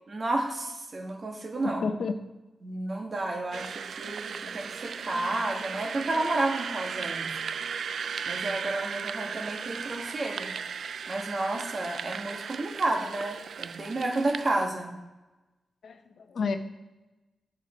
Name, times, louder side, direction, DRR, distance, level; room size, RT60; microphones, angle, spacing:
voice 1, 0.1-1.8 2.6-7.2 8.3-10.5 11.1-14.9, right 2 dB, 40° right, 1 dB, 1.7 m, -31 dB
voice 2, 1.6-2.1 15.8-16.6, left 5 dB, 65° left, 7 dB, 0.8 m, -30 dB
sound 1, 3.5-14.7, right 6 dB, 70° right, 0.3 m, -36 dB
8.5 x 6.9 x 4.4 m, 1.1 s
wide cardioid pair, 115°, 0 cm